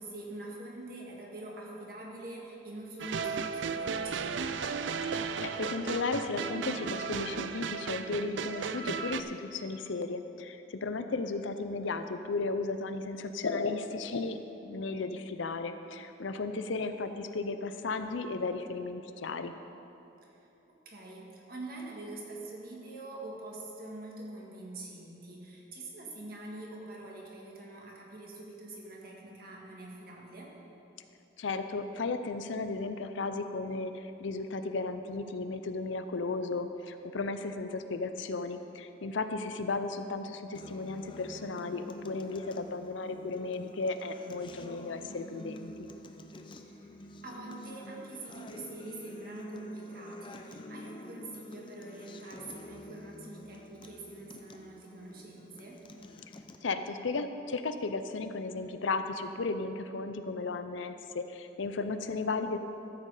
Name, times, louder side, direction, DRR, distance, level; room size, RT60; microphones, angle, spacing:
voice 1, 0.0-4.3 20.2-30.5 46.6-55.8, right 2 dB, 50° right, -2 dB, 1.7 m, -45 dB
sound 1, 3.0-9.2, right 5 dB, 75° right, 0.4 m, -35 dB
voice 2, 5.4-19.5 31.4-45.9 56.6-62.6, left 3 dB, 80° left, 9 dB, 0.6 m, -35 dB
Acoustic guitar, 40.5-56.6, left 1 dB, 25° left, 0.5 m, -48 dB
13.0 x 7.8 x 4.9 m, 3.0 s
head